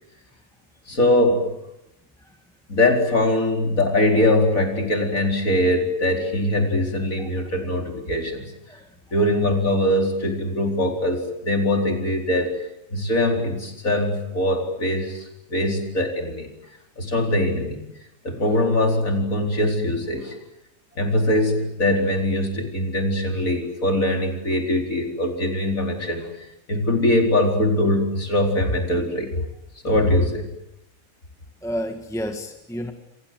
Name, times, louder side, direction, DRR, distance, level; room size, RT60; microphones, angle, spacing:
voice 1, 0.9-1.5 2.7-8.5 9.1-12.6 12.9-16.5 17.0-17.8 18.2-20.4 21.0-26.3 26.7-29.4 29.8-30.5, left 1 dB, 80° left, 3 dB, 4.9 m, -22 dB
voice 2, 31.6-32.9, equal, ahead, 5 dB, 1.8 m, -30 dB
28.5 x 26.0 x 7.8 m, 0.83 s
omnidirectional pair, 1.4 m